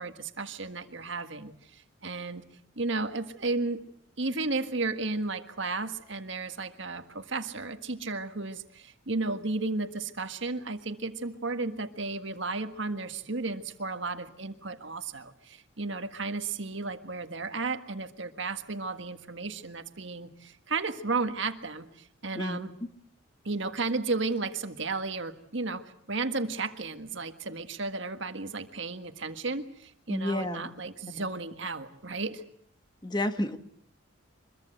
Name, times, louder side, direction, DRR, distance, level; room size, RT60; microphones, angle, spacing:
voice 1, 0.0-2.4 2.7-3.8 4.2-22.7 23.4-32.4, right 3 dB, 65° right, 8 dB, 1.7 m, -33 dB
voice 2, 30.1-30.7 31.2-31.3 33.0-33.6, left 1 dB, 20° left, 8 dB, 1.6 m, -30 dB
24.5 x 22.5 x 7.9 m, 0.65 s
head